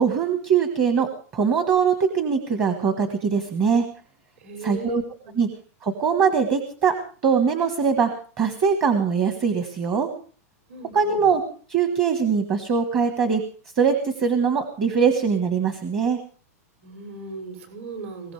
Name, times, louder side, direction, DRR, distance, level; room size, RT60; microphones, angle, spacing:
voice 1, 0.0-3.8 4.6-5.0 5.3-5.5 5.8-6.9 7.2-8.1 8.4-10.1 10.9-11.4 11.7-13.4 13.7-16.2, right 6 dB, 25° right, 7 dB, 1.5 m, -22 dB
voice 2, 4.4-5.0 5.2-5.3 10.7-11.2 16.8-18.3, right 4 dB, 55° right, 4 dB, 6.6 m, -37 dB
21.0 x 17.5 x 3.4 m, 0.41 s
supercardioid pair, 175°, 9 cm